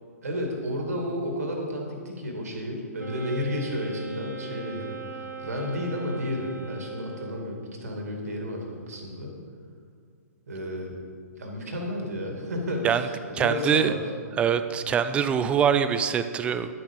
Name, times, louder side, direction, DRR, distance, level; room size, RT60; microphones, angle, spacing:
voice 1, 0.2-9.3 10.5-10.9 11.4-14.0, left 1 dB, 65° right, 1 dB, 2.6 m, -32 dB
Wind instrument woodwind instrument, 3.0-7.6, right 6 dB, 85° right, 1.3 m, -40 dB
voice 2, 13.3-13.9 14.4-16.7, right 8 dB, 15° right, 11 dB, 0.4 m, -24 dB
11.5 x 8.5 x 5.4 m, 2.1 s
figure-of-eight pair, 120°, 9 cm